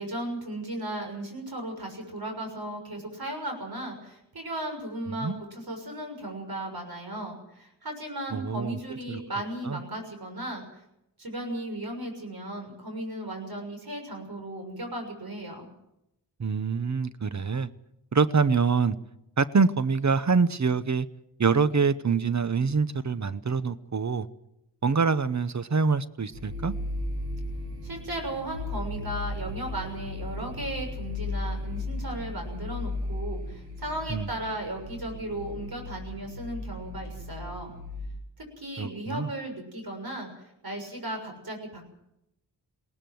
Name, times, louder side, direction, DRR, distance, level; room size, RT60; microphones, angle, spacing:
voice 1, 0.0-10.8 11.2-15.7 27.8-37.7 38.6-40.3 40.6-41.8, right 1 dB, 55° right, 4 dB, 6.7 m, -36 dB
voice 2, 8.3-8.8 9.1-9.2 9.6-9.8 16.4-17.7 18.1-19.0 19.4-21.1 21.4-24.3 24.8-26.7 34.1-34.3 38.8-39.3, right 5 dB, 40° right, 15 dB, 0.9 m, -25 dB
sound 1, 26.3-38.1, left 2 dB, 80° right, 6.4 m, -35 dB
20.0 x 18.5 x 7.8 m, 0.83 s
cardioid pair, 65°, 43 cm